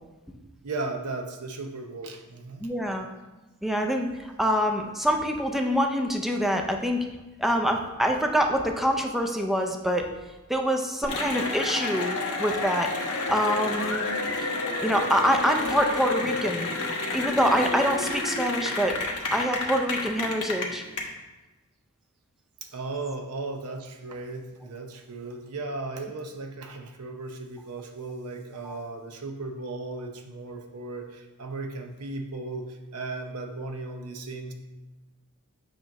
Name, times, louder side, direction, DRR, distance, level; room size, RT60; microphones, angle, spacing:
voice 1, 0.6-2.7 14.2-14.4 22.6-34.5, right 3 dB, 85° right, 5 dB, 0.8 m, -36 dB
voice 2, 2.6-3.1 3.6-7.1 7.4-10.1 10.5-12.9 13.3-14.1 14.4-14.5 14.8-16.7 17.1-20.8 28.6-28.7, equal, ahead, 3 dB, 0.4 m, -25 dB
Cheering / Applause, 11.0-21.0, left 2 dB, 90° left, 1.1 m, -30 dB
7.6 x 3.0 x 5.8 m, 1.1 s
head